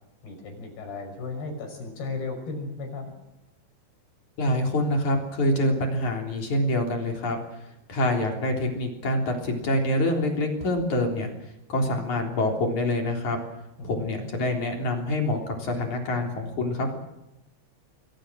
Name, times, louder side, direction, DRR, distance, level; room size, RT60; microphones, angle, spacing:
voice 1, 0.2-3.1 13.8-14.0, left 3 dB, 85° left, 4 dB, 8.0 m, -35 dB
voice 2, 4.4-7.4 7.9-11.3 11.7-13.4 13.8-17.0, left 1 dB, 50° left, 2 dB, 4.8 m, -26 dB
29.5 x 22.0 x 6.4 m, 0.89 s
omnidirectional pair, 4.5 m